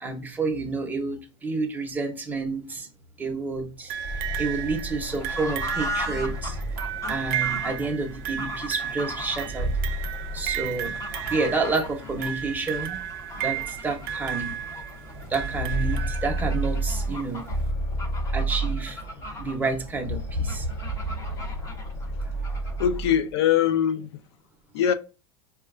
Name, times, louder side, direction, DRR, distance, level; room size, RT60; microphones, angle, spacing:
voice 1, 0.0-2.9 3.2-4.0 4.4-6.6 7.1-9.7 10.3-11.0 11.3-13.0 13.3-14.6 15.3-17.4 18.3-19.0 19.4-20.7 22.2-22.3, right 3 dB, 10° right, 0.7 m, -29 dB
sound 1, 3.7-7.5 9.3-11.5 11.8-11.9 12.7-12.8 13.3-13.5 15.1-19.3 19.9-23.3, right 1 dB, 55° left, 1.2 m, -31 dB
sound 2, 3.9-16.7 17.7-17.8, right 10 dB, 60° right, 0.5 m, -34 dB
Fowl / Bird, 5.0-23.0, left 1 dB, 20° left, 0.7 m, -38 dB
voice 2, 22.8-24.2 24.7-24.9, left 9 dB, 75° left, 0.5 m, -22 dB
4.2 x 2.2 x 2.4 m
supercardioid pair, 130°, 14 cm